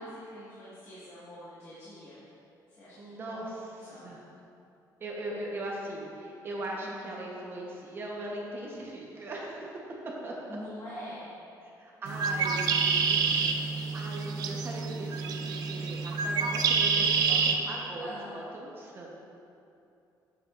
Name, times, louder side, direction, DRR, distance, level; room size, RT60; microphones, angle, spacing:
voice 1, 0.0-2.2 2.7-3.5 3.8-4.2 6.8-7.1 10.5-11.3 12.6-13.6 18.0-18.4, equal, 40° left, -11 dB, 1.6 m, -45 dB
voice 2, 3.0-3.5 3.8-4.2 5.0-9.8 10.2-10.3 11.8-13.2 13.9-19.1, right 1 dB, 30° right, -3 dB, 1.0 m, -39 dB
Bird, 12.1-17.6, right 5 dB, 60° right, 0.5 m, -27 dB
8.5 x 7.7 x 2.5 m, 2.7 s
cardioid pair, 170°, 7 cm